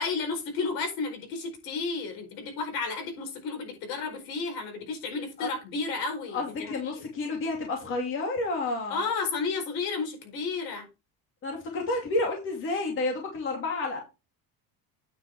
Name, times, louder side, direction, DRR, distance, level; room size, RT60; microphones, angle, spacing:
voice 1, 0.0-7.0 8.9-10.8, left 4 dB, 80° left, 4 dB, 4.6 m, -32 dB
voice 2, 6.3-9.0 11.4-14.0, left 2 dB, 35° left, 1 dB, 2.6 m, -30 dB
9.4 x 5.8 x 4.7 m, 0.27 s
cardioid pair, 175°, 35 cm